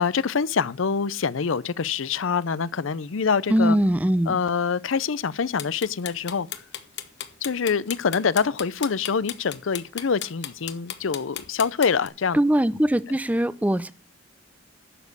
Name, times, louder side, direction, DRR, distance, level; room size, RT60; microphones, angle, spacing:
voice 1, 0.0-3.8 4.3-6.5 7.4-12.4, left 5 dB, 80° left, 0.6 m, -25 dB
voice 2, 3.5-4.4 12.3-13.9, right 1 dB, 10° right, 0.5 m, -21 dB
sound 1, 5.6-12.1, left 10 dB, 60° left, 1.2 m, -35 dB
11.0 x 7.3 x 6.6 m
head